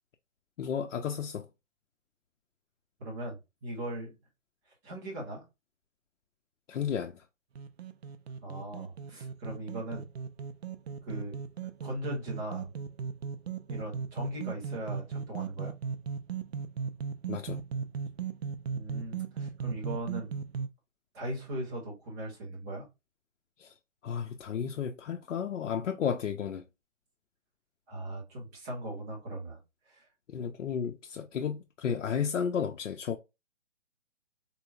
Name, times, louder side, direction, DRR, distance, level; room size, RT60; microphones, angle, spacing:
voice 1, 0.6-1.5 6.7-7.2 17.3-17.6 23.6-23.7 24.0-26.6 30.3-33.2, left 7 dB, 80° left, 0.6 m, -33 dB
voice 2, 3.0-4.2 4.8-5.4 8.4-10.0 11.0-11.4 11.8-12.7 13.7-15.7 18.7-20.3 21.1-22.9 27.9-29.6 29.9-30.1, right 1 dB, 15° right, 0.8 m, -39 dB
sound 1, 7.5-20.7, right 6 dB, 55° right, 0.5 m, -37 dB
3.8 x 2.9 x 2.2 m
hypercardioid pair, 160°, 38 cm